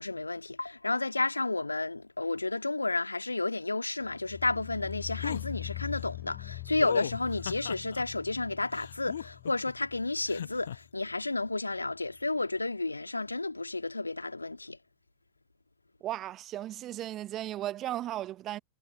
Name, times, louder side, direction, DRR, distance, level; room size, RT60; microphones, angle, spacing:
voice 1, 0.0-14.8, left 2 dB, 80° left, 1.9 m, -31 dB
sound 1, 4.0-11.1 11.4-11.9 12.2-12.3, left 35 dB, 45° left, 3.5 m, -43 dB
sound 2, 5.2-5.4 6.8-8.0 8.7-9.7 10.3-10.8, left 9 dB, 65° left, 1.1 m, -36 dB
voice 2, 16.0-18.6, right 13 dB, 35° right, 0.8 m, -36 dB
figure-of-eight pair, 90°, 0 cm